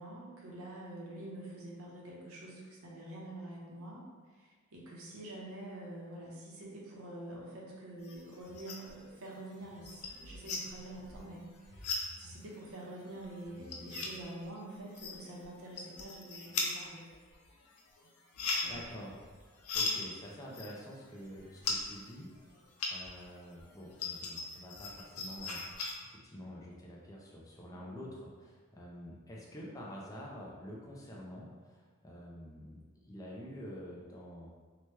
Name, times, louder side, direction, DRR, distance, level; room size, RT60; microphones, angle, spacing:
voice 1, 0.0-4.0 4.3-17.0 18.6-18.8 19.8-20.0 27.7-28.2, right 1 dB, 75° right, -3 dB, 0.7 m, -47 dB
sound 1, 8.0-9.0 9.3-23.3 23.6-25.9, left 3 dB, 85° left, 0.5 m, -39 dB
voice 2, 18.7-19.5 19.7-22.5 22.9-25.6 26.0-34.5, equal, 15° left, -4 dB, 0.4 m, -48 dB
2.9 x 2.2 x 3.2 m, 1.5 s
head